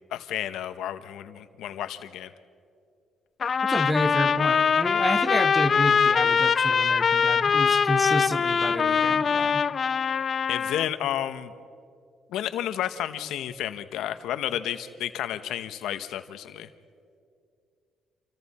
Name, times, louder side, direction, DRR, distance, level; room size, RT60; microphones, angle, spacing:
voice 1, 0.1-2.3 8.8-9.0 10.5-11.5 12.3-16.7, left 11 dB, 85° left, 11 dB, 0.9 m, -31 dB
Trumpet, 3.4-10.9, left 6 dB, 45° left, 0.6 m, -23 dB
voice 2, 3.7-9.6, equal, 5° right, 11 dB, 1.1 m, -30 dB
28.0 x 27.5 x 4.3 m, 2.4 s
cardioid pair, 90°, 0 cm